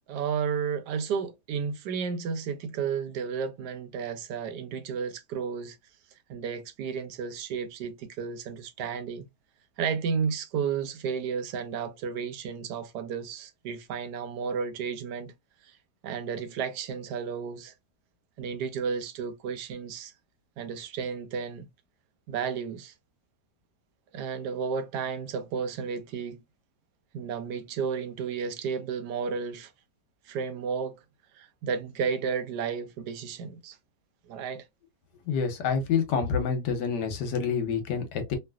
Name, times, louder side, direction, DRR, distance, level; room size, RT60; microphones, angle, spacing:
voice 1, 0.1-5.8 6.3-9.2 9.8-15.3 16.0-17.7 18.4-20.1 20.6-21.7 22.3-22.9 24.1-26.4 27.1-29.7 30.3-31.0 31.3-33.8 34.3-34.6, right 6 dB, 75° right, 1.2 m, -32 dB
voice 2, 35.3-38.4, left 6 dB, 75° left, 1.4 m, -27 dB
3.1 x 2.7 x 2.3 m
omnidirectional pair, 1.8 m